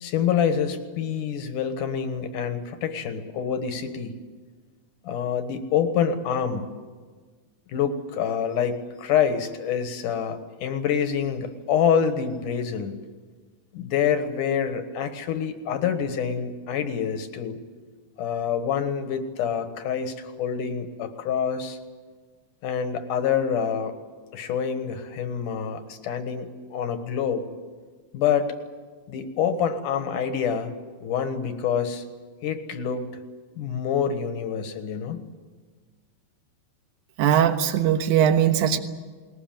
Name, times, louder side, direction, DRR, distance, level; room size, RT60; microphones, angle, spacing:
voice 1, 0.0-4.2 5.0-6.7 7.7-13.0 13.7-17.6 18.2-21.8 22.6-23.9 24.3-27.4 28.1-28.5 29.1-30.7 31.0-32.0 32.4-33.1 33.6-35.2, left 7 dB, 60° left, 8 dB, 2.4 m, -26 dB
voice 2, 37.2-38.8, right 9 dB, 65° right, 7 dB, 2.2 m, -20 dB
20.5 x 20.0 x 9.0 m, 1.5 s
omnidirectional pair, 5.0 m